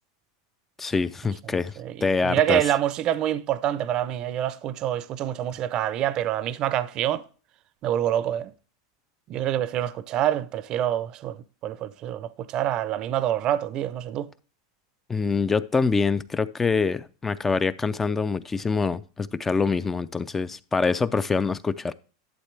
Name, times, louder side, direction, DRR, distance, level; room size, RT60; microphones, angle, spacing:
voice 1, 0.8-1.7 2.0-2.6 15.1-21.9, left 4 dB, 10° left, 0.4 m, -25 dB
voice 2, 1.8-7.2 7.8-8.5 9.3-14.3, right 11 dB, 35° right, 0.6 m, -26 dB
11.5 x 7.3 x 3.3 m
supercardioid pair, 145°, 2 cm